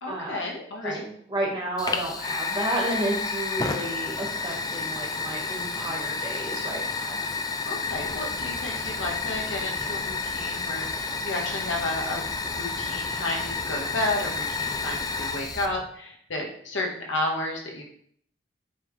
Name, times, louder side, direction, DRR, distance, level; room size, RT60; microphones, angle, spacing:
voice 1, 0.0-1.1 7.6-12.2 12.5-17.8, left 2 dB, 85° left, 0 dB, 1.3 m, -32 dB
voice 2, 0.8-7.2, right 1 dB, 25° right, -2 dB, 1.6 m, -31 dB
Fire, 1.8-15.7, left 4 dB, 20° left, 0.4 m, -31 dB
sound 1, 7.8-15.8, right 1 dB, 75° right, 1.8 m, -45 dB
8.6 x 3.6 x 3.3 m, 0.63 s
head